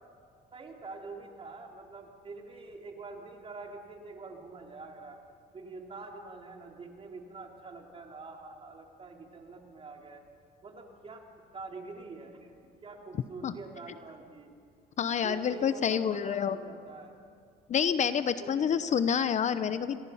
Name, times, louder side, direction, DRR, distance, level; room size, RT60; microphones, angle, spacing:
voice 1, 0.5-5.2 5.5-10.2 10.6-11.2 11.5-12.5 12.8-14.5 15.2-17.1 18.4-18.7, right 3 dB, 35° right, 1 dB, 3.4 m, -45 dB
voice 2, 15.0-16.6 17.7-20.0, left 7 dB, 45° left, 12 dB, 0.8 m, -28 dB
27.5 x 19.0 x 5.7 m, 2.2 s
cardioid pair, 110°, 17 cm